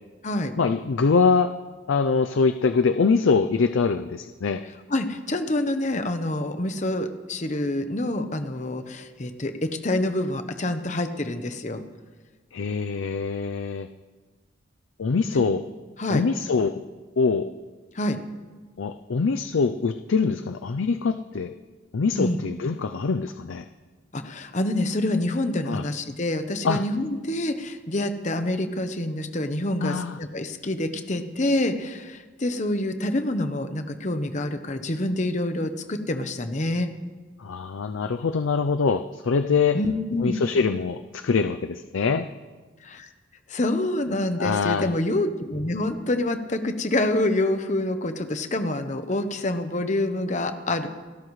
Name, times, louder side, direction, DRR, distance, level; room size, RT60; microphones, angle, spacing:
voice 1, 0.6-1.5 1.9-4.6 12.5-13.9 15.0-15.6 16.1-16.8 17.2-17.5 18.8-21.5 21.9-23.6 25.7-25.8 26.6-26.8 29.8-30.2 37.4-39.8 40.2-42.3 44.4-44.9, left 4 dB, 80° left, 9 dB, 0.5 m, -23 dB
voice 2, 4.9-11.8 15.3-15.4 16.0-16.2 17.9-18.2 22.2-22.4 24.1-36.9 39.7-40.3 42.8-43.1 43.5-50.9, left 1 dB, 35° left, 8 dB, 0.9 m, -27 dB
28.5 x 12.5 x 3.2 m, 1.3 s
head